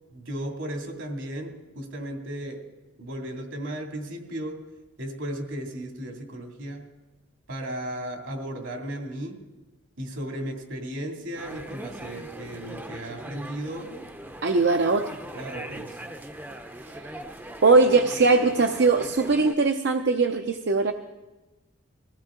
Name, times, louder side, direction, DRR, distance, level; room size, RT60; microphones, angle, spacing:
voice 1, 0.1-2.6 3.0-4.6 5.0-6.9 7.5-9.4 10.0-14.0 15.3-16.0, right 1 dB, 75° right, 2 dB, 2.6 m, -35 dB
sound 1, 11.4-19.5, right 1 dB, 10° right, 0.6 m, -40 dB
voice 2, 14.4-15.1 17.0-17.1 17.6-20.9, right 3 dB, 60° right, 6 dB, 0.6 m, -20 dB
21.0 x 16.0 x 3.8 m, 1.1 s
head